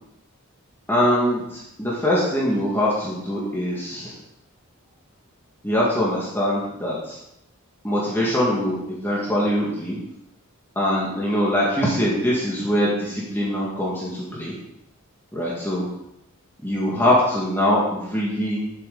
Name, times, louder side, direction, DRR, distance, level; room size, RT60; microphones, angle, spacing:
voice 1, 0.9-1.4 1.8-4.1 5.6-7.2 7.8-10.0 10.8-14.5 15.3-15.9 16.6-18.6, equal, 10° left, -6 dB, 2.1 m, -22 dB
12.0 x 8.2 x 4.0 m, 0.84 s
head